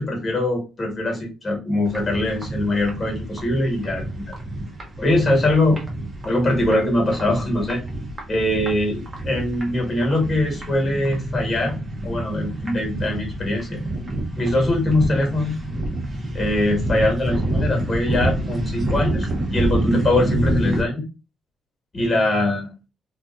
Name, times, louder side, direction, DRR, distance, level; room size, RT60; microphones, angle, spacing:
voice 1, 0.0-4.3 5.0-5.8 6.2-7.8 8.3-11.8 12.0-13.8 14.4-15.6 16.3-21.0 21.9-22.7, left 1 dB, 30° left, 0 dB, 1.4 m, -22 dB
sound 1, 1.8-20.8, right 1 dB, 30° right, 0.9 m, -27 dB
2.6 x 2.4 x 2.3 m, 0.31 s
cardioid pair, 90°, 0 cm